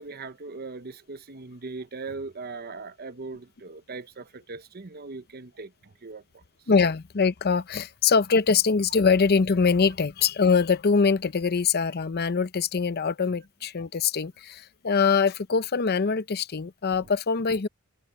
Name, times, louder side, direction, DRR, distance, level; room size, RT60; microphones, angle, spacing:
voice 1, 0.0-6.4, right 3 dB, 45° right, 0.9 m, -39 dB
voice 2, 6.7-17.7, left 5 dB, 45° left, 0.6 m, -23 dB
open air
head